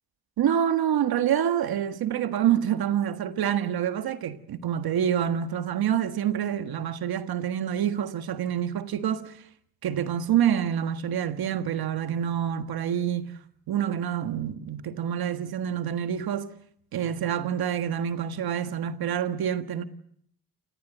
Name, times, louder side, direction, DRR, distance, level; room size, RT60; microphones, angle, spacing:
voice 1, 0.4-9.4 9.8-13.4 13.7-16.5 16.9-19.8, right 9 dB, 85° right, 1.6 m, -27 dB
28.5 x 17.5 x 8.1 m
cardioid pair, 75°, 36 cm